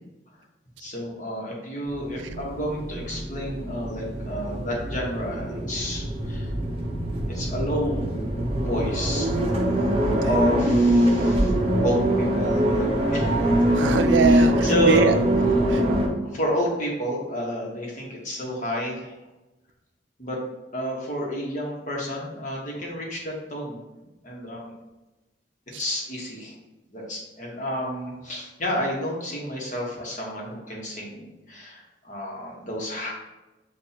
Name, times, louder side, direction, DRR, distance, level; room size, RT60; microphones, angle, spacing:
voice 1, 0.8-6.5 7.3-8.1 8.5-9.3 10.2-11.5 11.8-13.3 14.3-15.1 15.6-15.8 16.2-19.2 20.2-20.4 20.7-23.8 24.2-24.7 25.8-26.6 26.9-33.1, equal, 45° left, -2 dB, 1.2 m, -30 dB
sound 1, 1.9-16.1, right 1 dB, 35° right, 0.8 m, -23 dB
voice 2, 9.6-10.3 13.7-15.1 15.7-15.8, right 4 dB, 85° right, 9 dB, 0.4 m, -24 dB
7.4 x 2.5 x 2.8 m, 1.1 s
head